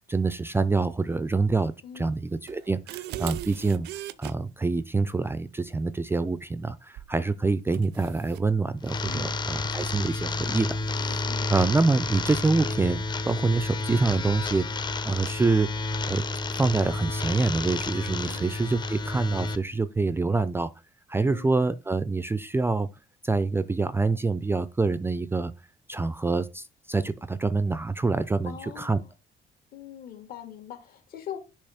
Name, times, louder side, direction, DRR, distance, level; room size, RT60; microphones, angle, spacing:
voice 1, 0.1-3.9 4.2-10.8 11.5-13.0 13.2-15.7 16.1-16.2 16.5-20.7 21.1-22.9 23.2-25.5 25.9-29.0, right 3 dB, 15° right, 0.4 m, -26 dB
voice 2, 1.8-2.1 9.0-9.4 11.0-11.5 18.2-18.5 21.3-21.6 28.4-29.1 29.7-31.4, left 9 dB, 60° left, 2.1 m, -42 dB
sound 1, 2.5-4.3 7.0-7.2 7.7-8.5, right 14 dB, 80° right, 0.5 m, -38 dB
sound 2, 8.8-19.6, left 2 dB, 25° left, 0.7 m, -30 dB
6.8 x 3.0 x 5.7 m
cardioid pair, 110°, 17 cm